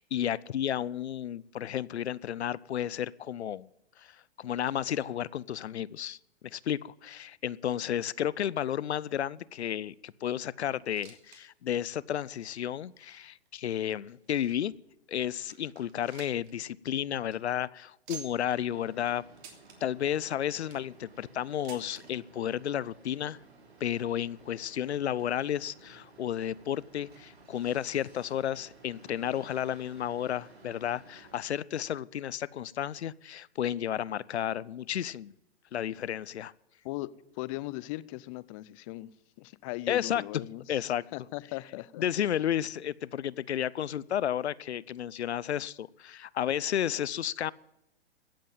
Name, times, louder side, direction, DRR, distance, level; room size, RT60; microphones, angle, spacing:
voice 1, 0.0-3.7 4.0-6.2 6.4-14.7 15.1-19.2 19.8-23.4 23.8-35.3 35.7-36.5 39.9-40.2 40.7-41.0 42.0-47.5, left 10 dB, 90° left, 0.6 m, -32 dB
sound 1, 10.7-11.4 11.7-11.8 12.5-12.6 13.3-14.7 15.2-15.3 15.5-16.5 16.8-16.9 17.2-17.4 18.1-18.5 19.4-19.8 20.4-20.9 21.6-22.0 23.0-23.1 23.3-23.4 24.2-24.3, right 6 dB, 35° right, 3.1 m, -49 dB
sound 2, 18.5-31.3, right 3 dB, 70° right, 5.1 m, -56 dB
voice 2, 36.8-39.1 39.4-42.0, left 19 dB, 35° left, 0.5 m, -39 dB
16.0 x 7.6 x 8.8 m
hypercardioid pair, 125°, 32 cm